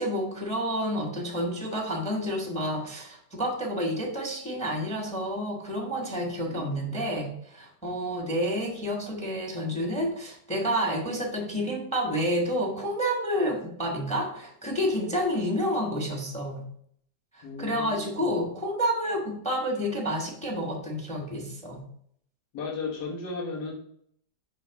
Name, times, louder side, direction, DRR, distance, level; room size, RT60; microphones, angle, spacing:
voice 1, 0.0-16.6 17.3-21.8, equal, 5° left, 1 dB, 1.0 m, -29 dB
voice 2, 6.4-7.0 17.4-18.5 22.5-23.7, left 4 dB, 75° left, -1 dB, 1.8 m, -36 dB
5.3 x 5.2 x 4.6 m, 0.66 s
omnidirectional pair, 1.8 m